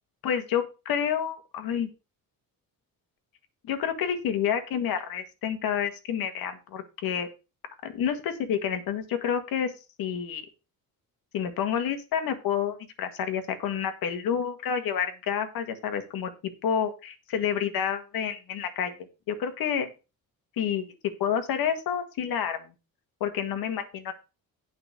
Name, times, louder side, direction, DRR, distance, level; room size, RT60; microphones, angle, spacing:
voice 1, 0.2-1.9 3.6-7.3 7.8-9.7 10.0-10.5 11.3-16.3 16.6-18.9 19.3-19.9 20.6-20.9 21.2-22.6 23.2-24.1, left 8 dB, 75° left, 8 dB, 1.9 m, -29 dB
9.2 x 5.5 x 6.5 m, 0.30 s
cardioid pair, 175°, 36 cm